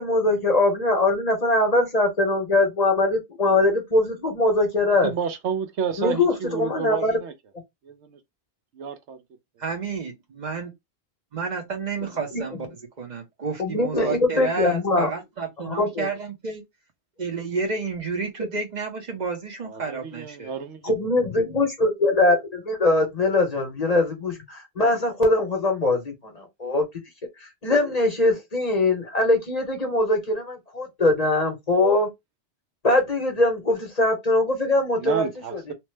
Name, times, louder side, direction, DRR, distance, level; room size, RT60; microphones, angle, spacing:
voice 1, 0.0-5.1 6.0-7.1 12.3-12.4 13.6-15.1 15.6-16.1 20.8-26.8 27.6-32.1 32.8-35.6, left 2 dB, 40° left, 0.9 m, -22 dB
voice 2, 4.8-7.3 7.8-8.2 8.7-9.2 9.7-9.8 19.6-20.9 35.0-35.7, right 6 dB, 80° right, 1.0 m, -31 dB
voice 3, 9.6-10.7 11.3-12.7 13.0-16.6 17.2-20.5, right 4 dB, 45° right, 0.8 m, -31 dB
3.0 x 2.0 x 3.2 m
omnidirectional pair, 1.1 m